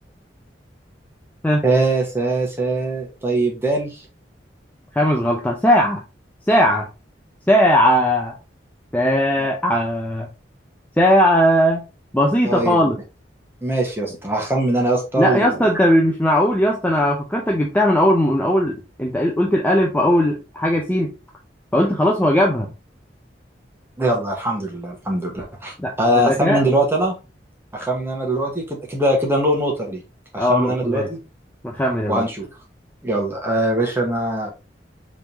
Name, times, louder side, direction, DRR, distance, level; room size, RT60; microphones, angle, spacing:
voice 1, 1.6-4.0 12.4-12.8 13.6-15.7 24.0-27.2 27.7-30.0 30.3-31.2 32.1-32.5 33.0-34.5, right 1 dB, 15° right, -1 dB, 1.4 m, -21 dB
voice 2, 4.9-6.0 6.5-6.9 7.5-8.3 8.9-10.3 11.0-11.8 12.1-13.0 15.2-21.1 21.7-22.7 25.8-26.6 30.3-31.1 31.6-32.2, equal, 10° left, 0 dB, 0.6 m, -18 dB
5.1 x 3.6 x 2.9 m, 0.28 s
head